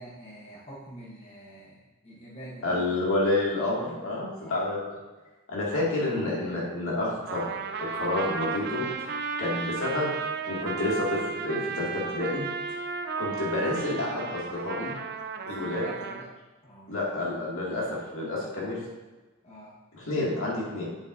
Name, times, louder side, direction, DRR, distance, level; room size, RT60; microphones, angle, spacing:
voice 1, 0.0-3.1 4.4-4.7 5.9-6.1 15.4-16.3 16.6-17.0 19.4-19.8, right 1 dB, 30° left, -6 dB, 1.0 m, -46 dB
voice 2, 2.6-4.9 5.5-7.5 7.8-8.8 9.4-10.1 10.5-12.4 13.2-14.9 15.5-15.8 16.9-18.8 19.9-20.8, left 2 dB, 65° left, -5 dB, 2.3 m, -29 dB
Trumpet, 7.3-16.3, right 5 dB, 50° right, 0.5 m, -34 dB
7.7 x 7.1 x 2.7 m, 1.2 s
head